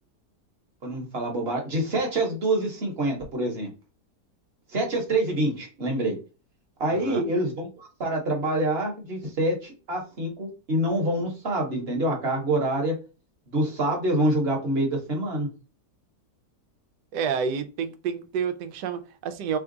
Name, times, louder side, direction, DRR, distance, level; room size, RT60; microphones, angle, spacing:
voice 1, 0.8-3.7 4.7-6.2 6.8-12.9 13.5-15.5, right 1 dB, 40° right, 1.2 m, -26 dB
voice 2, 6.9-7.3 17.1-19.6, right 6 dB, 85° right, 1.2 m, -29 dB
3.5 x 2.3 x 3.8 m
omnidirectional pair, 1.8 m